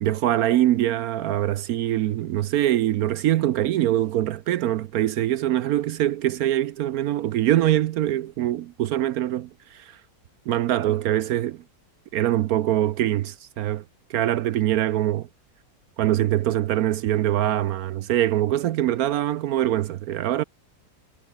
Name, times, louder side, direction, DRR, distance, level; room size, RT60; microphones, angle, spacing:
voice 1, 0.0-10.0 10.5-11.6 12.1-13.8 14.1-15.3 16.0-20.4, right 13 dB, 70° right, 1.0 m, -23 dB
omnidirectional pair, 1.8 m